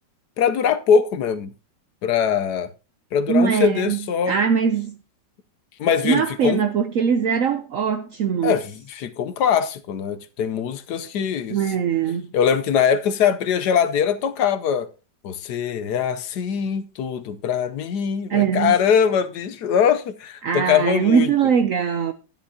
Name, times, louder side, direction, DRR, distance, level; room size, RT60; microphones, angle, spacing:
voice 1, 0.4-1.5 2.0-2.7 3.1-4.3 5.8-6.6 8.4-11.6 12.3-14.9 15.2-21.3, left 7 dB, 70° left, 1.2 m, -22 dB
voice 2, 3.3-5.0 6.0-8.5 11.5-12.3 18.3-18.8 20.4-22.1, right 7 dB, 65° right, 0.8 m, -21 dB
12.0 x 10.5 x 2.8 m
omnidirectional pair, 2.0 m